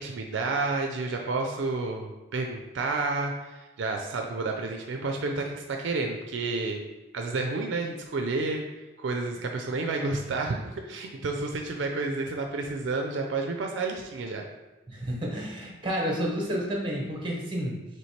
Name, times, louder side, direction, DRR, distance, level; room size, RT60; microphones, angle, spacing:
voice 1, 0.0-6.8 7.1-8.6 9.0-14.4, right 3 dB, 70° right, 3 dB, 0.4 m, -30 dB
voice 2, 14.9-17.8, equal, 25° right, -1 dB, 0.8 m, -30 dB
3.1 x 3.1 x 4.2 m, 1.1 s
head